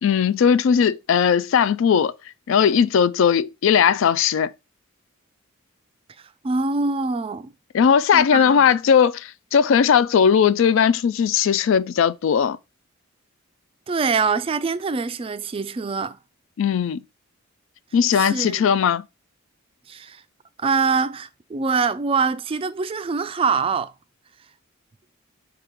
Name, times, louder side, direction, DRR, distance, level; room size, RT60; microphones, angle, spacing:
voice 1, 0.0-2.1 2.5-4.5 7.7-12.6 16.6-17.0 17.9-19.0, left 7 dB, 65° left, 0.3 m, -18 dB
voice 2, 6.4-7.5 8.1-8.7 13.9-16.2 18.1-18.6 19.9-20.2 20.6-23.9, right 4 dB, 25° right, 0.3 m, -24 dB
4.8 x 3.6 x 3.0 m
head